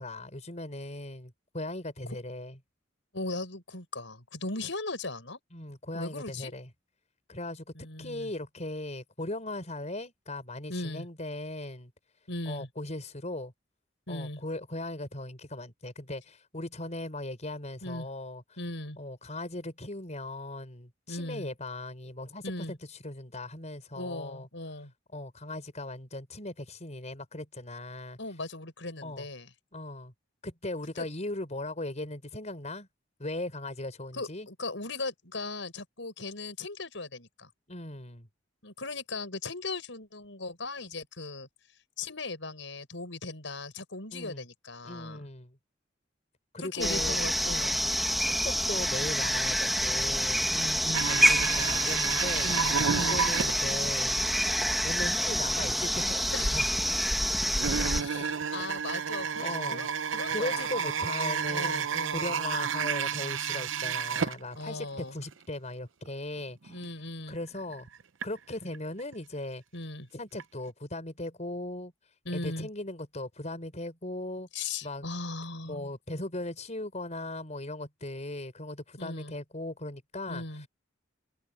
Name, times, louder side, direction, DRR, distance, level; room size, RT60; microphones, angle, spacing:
voice 1, 0.0-2.6 5.5-6.7 7.3-11.9 12.5-13.5 14.1-18.4 19.0-24.5 25.1-28.2 29.0-29.3 29.7-30.1 30.4-32.9 33.2-34.5 37.7-38.3 44.1-44.4 44.8-45.6 46.5-47.2 48.2-50.5 51.0-52.5 52.9-54.2 54.8-56.6 58.1-58.3 58.9-59.1 59.4-59.9 60.3-61.9 62.1-66.8 67.3-67.9 68.2-69.6 70.1-71.9 72.3-74.5 74.8-75.1 75.6-80.7, left 2 dB, 40° left, 5.2 m, -38 dB
voice 2, 3.1-5.4 5.9-6.5 7.8-8.3 10.7-11.1 12.3-12.7 14.1-14.4 17.8-18.1 18.6-19.0 21.1-21.5 22.4-22.7 24.0-24.9 28.2-29.5 31.0-31.1 34.1-37.5 38.6-41.5 42.0-45.3 46.6-47.8 50.5-51.2 52.4-53.2 56.3-56.6 57.9-60.8 61.5-62.4 64.6-65.2 66.7-67.4 69.7-70.1 72.3-72.7 74.5-75.9 79.0-79.3 80.3-80.7, left 2 dB, 75° left, 7.1 m, -38 dB
sound 1, 46.8-58.0, equal, ahead, 2.0 m, -27 dB
sound 2, 50.9-54.0 54.3-54.4 54.9-55.0 55.7-55.8 57.6-65.0 65.2-65.3 66.1-66.2 66.7-66.9 67.3-68.3 68.7-69.1 70.4-70.5 70.7-70.8, right 7 dB, 90° right, 0.7 m, -31 dB
head